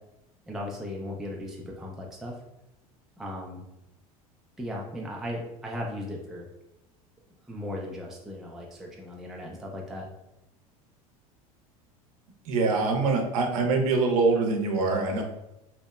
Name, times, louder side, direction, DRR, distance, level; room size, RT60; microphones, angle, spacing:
voice 1, 0.5-2.4 3.2-3.6 4.6-6.5 7.5-10.1, left 1 dB, ahead, -2 dB, 0.4 m, -37 dB
voice 2, 12.5-15.2, right 3 dB, 75° right, 2 dB, 0.6 m, -24 dB
2.8 x 2.0 x 2.3 m, 0.91 s
hypercardioid pair, 80°, 18 cm